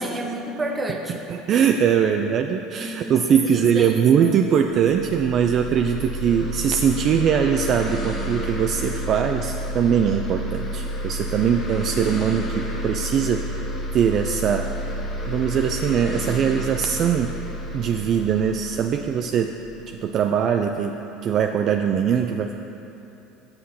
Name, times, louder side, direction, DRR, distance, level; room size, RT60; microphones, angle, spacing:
voice 1, 0.0-1.3 2.8-4.3, right 2 dB, 20° right, 3 dB, 0.8 m, -30 dB
voice 2, 1.3-13.7 13.9-15.0 15.3-17.3 17.7-19.6 19.9-22.5, right 7 dB, 50° right, 5 dB, 0.3 m, -21 dB
sound 1, 4.8-20.2, equal, 35° left, 1.5 m, -30 dB
6.6 x 5.6 x 5.5 m, 2.9 s
supercardioid pair, 95°, 0 cm